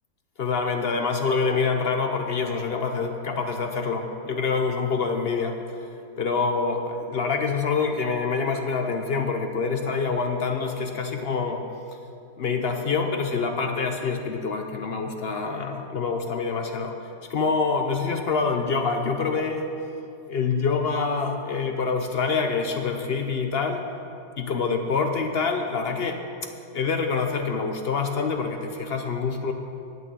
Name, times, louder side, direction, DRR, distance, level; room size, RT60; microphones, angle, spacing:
voice 1, 0.4-5.6 6.2-11.6 12.4-17.0 17.3-19.7 20.3-23.8 24.4-26.2 26.7-29.5, left 4 dB, 65° left, 5 dB, 0.6 m, -26 dB
11.0 x 6.1 x 8.9 m, 2.5 s
omnidirectional pair, 1.9 m